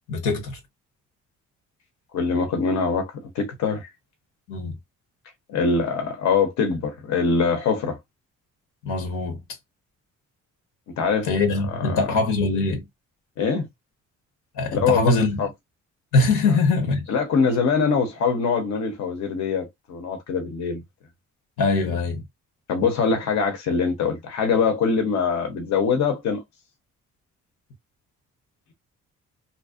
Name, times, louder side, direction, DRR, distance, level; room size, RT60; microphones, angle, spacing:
voice 1, 0.1-0.6 4.5-4.8 8.8-9.4 11.2-12.8 14.6-15.4 16.1-17.1 21.6-22.2, left 3 dB, 90° left, 0.9 m, -22 dB
voice 2, 2.1-3.9 5.5-8.0 11.0-11.3 11.5-12.2 13.4-13.7 14.7-15.5 16.5-16.6 17.1-20.8 22.7-26.4, left 5 dB, 65° left, 0.7 m, -23 dB
2.5 x 2.0 x 2.4 m
cardioid pair, 90°, 30 cm